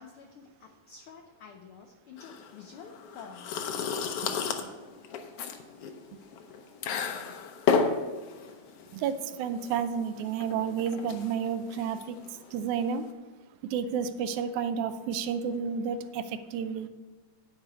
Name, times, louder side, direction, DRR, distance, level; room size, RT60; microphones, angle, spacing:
voice 1, 0.0-3.5, left 6 dB, 90° left, 4 dB, 1.2 m, -49 dB
sound 1, 2.2-13.1, left 5 dB, 70° left, 1.5 m, -33 dB
voice 2, 4.2-4.7 8.9-12.2 12.5-13.1 13.7-16.9, right 7 dB, 85° right, 10 dB, 2.0 m, -31 dB
10.5 x 4.7 x 6.8 m, 1.3 s
omnidirectional pair, 3.3 m